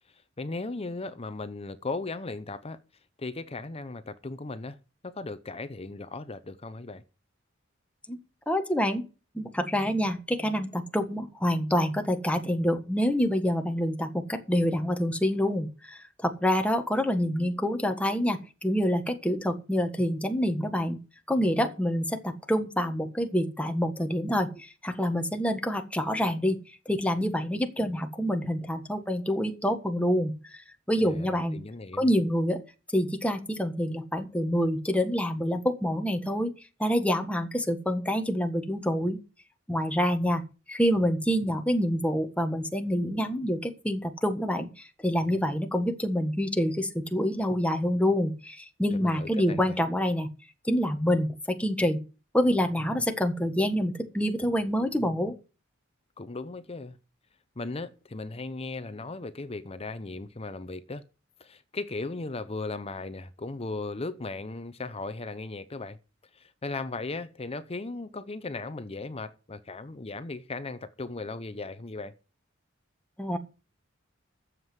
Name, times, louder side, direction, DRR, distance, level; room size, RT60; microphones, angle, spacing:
voice 1, 0.4-2.8 3.2-4.8 5.0-7.0 31.0-32.1 48.9-49.6 56.2-57.0 57.6-61.0 61.4-66.0 66.3-72.1, left 3 dB, 30° left, 0.7 m, -37 dB
voice 2, 8.5-9.0 9.3-21.0 21.3-26.6 26.8-31.6 32.0-32.6 32.9-36.5 36.8-39.2 39.7-40.4 40.7-50.3 50.6-52.0 52.3-55.3 73.2-73.4, equal, 5° left, 1.5 m, -27 dB
11.0 x 7.5 x 7.8 m
head